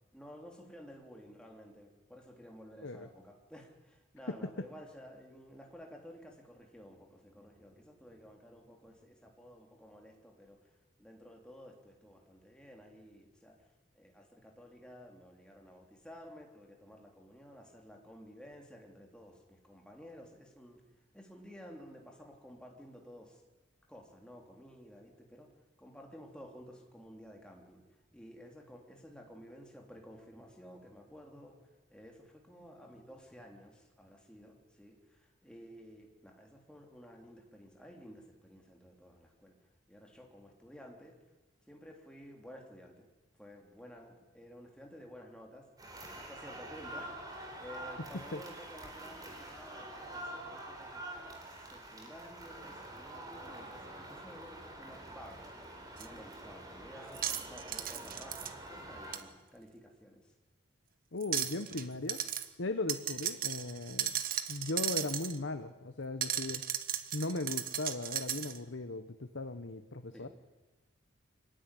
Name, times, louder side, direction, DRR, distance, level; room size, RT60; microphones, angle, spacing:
voice 1, 0.1-10.7 11.0-13.6 13.9-20.8 21.1-23.4 23.9-25.5 25.8-27.8 28.1-31.6 31.9-41.2 41.7-43.1 43.4-45.7 46.1-51.1 51.5-55.5 56.0-60.3 70.1-70.3, equal, 5° left, 1 dB, 3.3 m, -53 dB
sound 1, 45.8-59.2, right 1 dB, 20° right, 4.0 m, -46 dB
sound 2, 56.0-56.1 57.1-58.5 59.1-59.2 61.2-61.8 62.1-62.5 62.9-65.4 66.2-68.6, right 10 dB, 45° right, 1.3 m, -35 dB
voice 2, 61.1-62.2 62.6-64.1 64.5-66.6 67.1-70.3, left 2 dB, 70° left, 9 dB, 1.0 m, -38 dB
24.5 x 16.5 x 10.0 m, 1.2 s
head